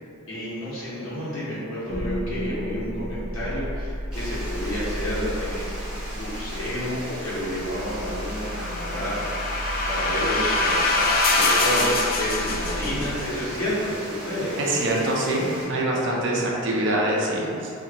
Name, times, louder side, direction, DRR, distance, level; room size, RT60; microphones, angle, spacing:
voice 1, 0.3-9.5 9.8-14.6, equal, 65° left, -9 dB, 1.0 m, -30 dB
sound 1, 1.9-14.0, equal, 85° left, 0.7 m, -34 dB
Water, 4.1-15.7, equal, 5° right, 0.6 m, -38 dB
sound 2, 8.1-13.4, left 2 dB, 45° left, 0.3 m, -24 dB
voice 2, 14.6-17.7, right 1 dB, 60° right, -3 dB, 0.5 m, -24 dB
2.9 x 2.5 x 2.8 m, 2.5 s
head